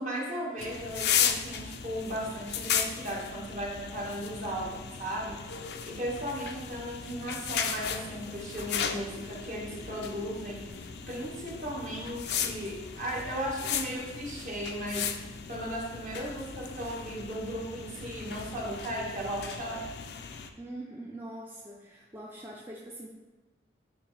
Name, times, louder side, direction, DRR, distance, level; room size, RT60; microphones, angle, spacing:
voice 1, 0.0-5.5 5.8-15.1 15.5-19.9, equal, 45° right, -3 dB, 1.4 m, -36 dB
sound 1, 0.6-20.5, left 8 dB, 65° left, 0.4 m, -36 dB
voice 2, 20.6-23.1, right 1 dB, 15° right, -3 dB, 0.4 m, -43 dB
9.6 x 3.2 x 3.2 m, 1.2 s
head